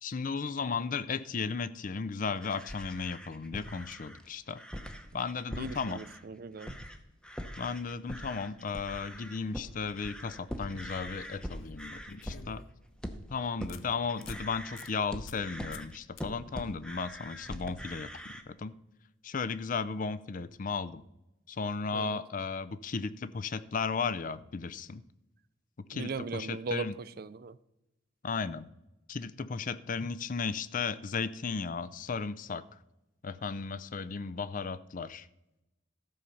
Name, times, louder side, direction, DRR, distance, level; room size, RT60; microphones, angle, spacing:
voice 1, 0.0-4.6 5.1-6.0 7.6-12.6 13.3-18.7 19.2-21.0 21.5-25.0 25.9-27.0 28.2-28.7 29.1-32.6 33.2-35.3, left 5 dB, 40° left, 0.5 m, -35 dB
sound 1, 2.4-6.2 6.6-7.0 7.2-18.4, equal, 5° left, 0.8 m, -43 dB
voice 2, 5.5-6.8 21.9-22.2 25.9-27.6, right 4 dB, 50° right, 0.4 m, -38 dB
sound 2, 10.1-10.2 11.6-12.9 13.3-13.4 13.7-13.8 14.2-14.4 14.8-14.9 15.3-15.5 15.7-15.9 16.2-16.3 19.4-19.5, left 6 dB, 90° left, 0.8 m, -50 dB
13.0 x 5.2 x 7.0 m
head